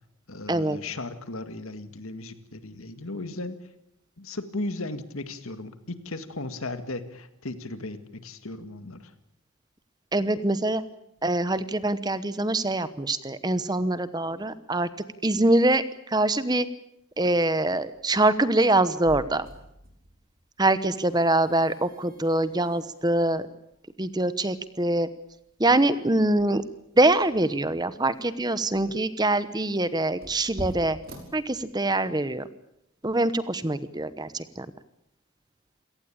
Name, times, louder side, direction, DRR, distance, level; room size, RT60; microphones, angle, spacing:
voice 1, 0.3-3.6 4.2-9.1, left 2 dB, 75° left, 10 dB, 2.0 m, -36 dB
voice 2, 10.1-10.8 11.2-14.9 15.2-16.7 17.2-19.5 20.6-23.4 24.0-25.1 25.6-26.6 27.0-31.0 31.3-32.4 33.0-34.7, right 2 dB, 20° right, 14 dB, 1.0 m, -24 dB
sound 1, 17.9-32.1, equal, 45° right, 5.6 m, -47 dB
28.0 x 18.0 x 8.7 m, 0.80 s
head